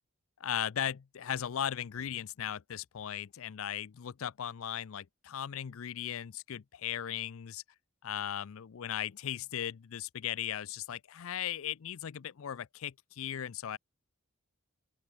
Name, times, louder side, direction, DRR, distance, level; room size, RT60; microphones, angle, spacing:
voice 1, 0.4-7.6 8.0-13.8, left 10 dB, 65° left, 0.4 m, -37 dB
open air
head